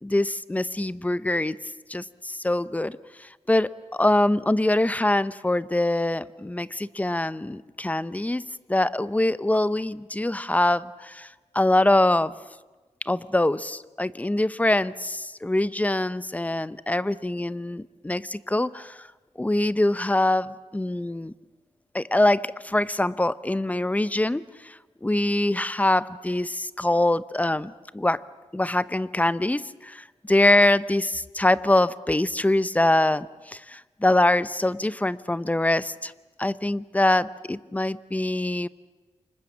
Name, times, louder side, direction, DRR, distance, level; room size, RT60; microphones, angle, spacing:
voice 1, 0.0-1.6 1.9-8.4 8.7-11.3 11.5-12.3 13.1-19.1 19.4-21.3 21.9-28.2 28.5-36.1 36.4-38.7, left 1 dB, 15° left, 16 dB, 0.8 m, -24 dB
29.0 x 25.5 x 7.3 m, 1.2 s
wide cardioid pair, 85°, 11 cm